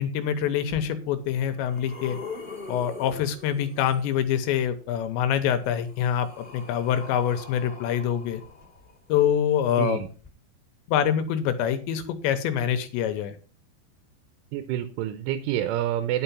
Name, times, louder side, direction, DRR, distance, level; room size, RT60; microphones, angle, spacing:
voice 1, 0.0-2.2 2.7-8.4 9.1-10.0 10.9-13.4, left 9 dB, 80° left, 10 dB, 3.0 m, -25 dB
sound 1, 0.7-0.8 1.4-4.1 5.3-9.2 10.2-10.3, left 4 dB, 20° left, 1.3 m, -42 dB
voice 2, 14.5-16.2, right 12 dB, 90° right, 10 dB, 3.4 m, -27 dB
11.0 x 5.8 x 5.6 m, 0.38 s
omnidirectional pair, 5.5 m